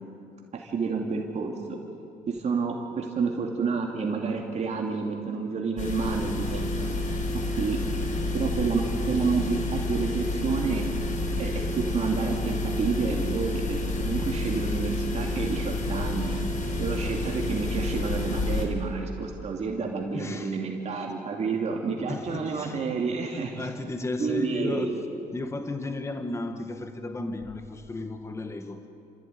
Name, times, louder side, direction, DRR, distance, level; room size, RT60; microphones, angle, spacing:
voice 1, 0.5-1.8 2.3-7.2 7.6-7.8 8.3-10.8 11.4-16.4 16.8-23.7 24.2-24.9, right 5 dB, 40° right, 0 dB, 2.7 m, -29 dB
sound 1, 5.8-18.6, left 2 dB, 50° left, 4.4 m, -29 dB
voice 2, 20.1-20.6 22.1-23.0 23.3-24.9 25.3-28.9, left 2 dB, 15° left, 7 dB, 1.5 m, -34 dB
30.0 x 15.0 x 9.7 m, 2.5 s
cardioid pair, 110°, 17 cm